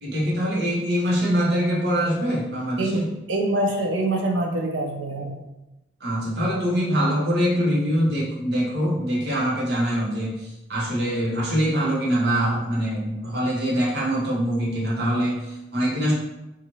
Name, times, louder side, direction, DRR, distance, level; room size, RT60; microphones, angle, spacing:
voice 1, 0.0-3.1 6.0-16.1, equal, 60° right, -5 dB, 0.9 m, -24 dB
voice 2, 3.3-5.4, right 1 dB, 85° right, 2 dB, 0.5 m, -24 dB
3.0 x 2.4 x 2.7 m, 0.97 s
head